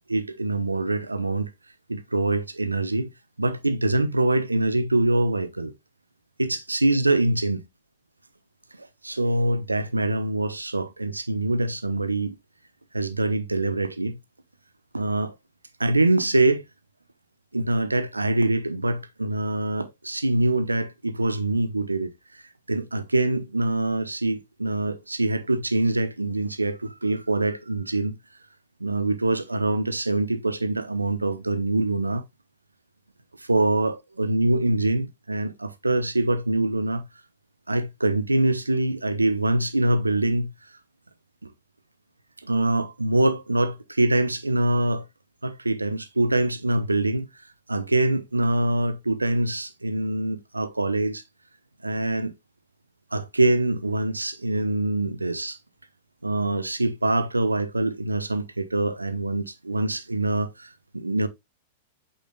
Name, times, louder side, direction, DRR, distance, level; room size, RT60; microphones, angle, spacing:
voice 1, 0.1-1.5 1.9-3.1 3.4-5.7 6.4-7.6 9.0-12.3 12.9-14.1 14.9-15.3 15.8-16.6 17.5-22.1 22.7-28.1 28.8-32.2 33.5-37.0 37.7-40.5 42.4-45.0 45.4-47.3 47.7-51.2 51.8-52.3 53.1-55.6 56.2-60.5 60.9-61.3, right 2 dB, 80° right, 0.8 m, -24 dB
8.4 x 5.6 x 2.3 m
figure-of-eight pair, 95°, 0 cm